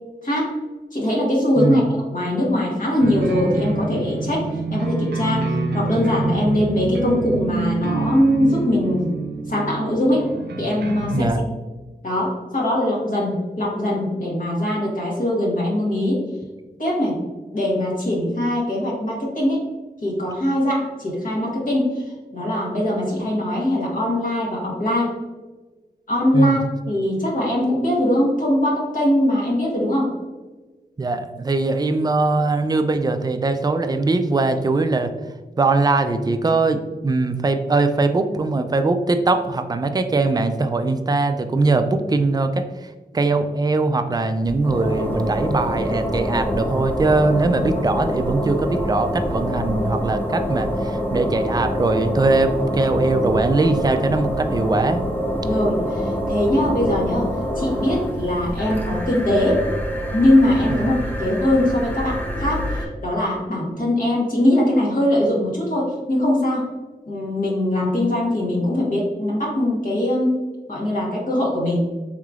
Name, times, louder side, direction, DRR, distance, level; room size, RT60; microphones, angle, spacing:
voice 1, 0.2-0.5 0.9-9.1 9.5-10.3 10.6-11.4 12.0-16.2 16.8-17.2 17.5-19.6 20.0-25.1 26.1-30.1 55.4-57.3 57.5-59.7 60.1-66.7 67.1-70.4 70.7-71.9, left 1 dB, 50° left, -4 dB, 1.3 m, -21 dB
voice 2, 1.6-1.9 11.1-11.4 26.3-26.6 31.0-35.1 35.6-55.1 60.7-60.8, right 3 dB, 25° right, 8 dB, 0.3 m, -21 dB
sound 1, 3.0-11.3, right 3 dB, 75° right, 0.5 m, -26 dB
sound 2, 44.4-62.9, equal, 10° left, 0.7 m, -26 dB
3.7 x 3.1 x 2.4 m, 1.2 s
wide cardioid pair, 70°, 17 cm